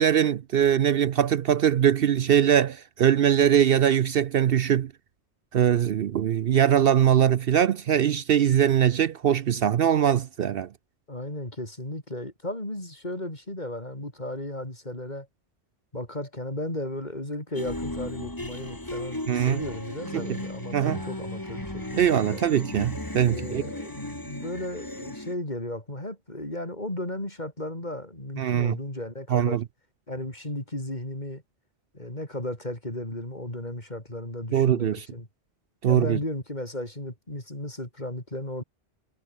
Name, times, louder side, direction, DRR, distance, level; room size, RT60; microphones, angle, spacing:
voice 1, 0.0-4.9 5.5-10.7 19.3-19.6 20.1-20.3 20.7-21.0 21.9-23.6 28.4-28.8 29.3-29.6 34.5-35.1 35.8-36.2, right 9 dB, 65° right, 0.8 m, -22 dB
voice 2, 11.1-15.3 15.9-22.4 23.3-29.6 30.1-31.4 31.9-35.3 35.9-38.6, left 1 dB, 40° left, 6.0 m, -35 dB
sound 1, 17.5-25.3, left 1 dB, 20° left, 2.6 m, -36 dB
omnidirectional pair, 1.1 m